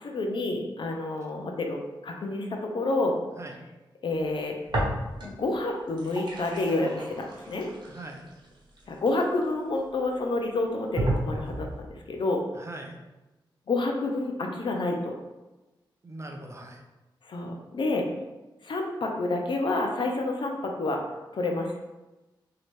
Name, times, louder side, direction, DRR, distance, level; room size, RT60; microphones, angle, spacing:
voice 1, 0.0-3.2 4.0-4.6 5.2-7.7 8.9-12.4 13.7-15.2 17.3-18.1 18.6-21.0 21.3-21.8, left 2 dB, 65° left, 2 dB, 0.6 m, -29 dB
sound 1, 4.7-5.5 5.8-9.8 10.3-10.4 11.0-11.8, right 1 dB, 55° right, 0.9 m, -32 dB
voice 2, 7.9-8.2 12.5-13.0 16.0-16.8, right 2 dB, 30° right, 2 dB, 0.6 m, -41 dB
3.0 x 2.8 x 3.1 m, 1.1 s
cardioid pair, 70°, 9 cm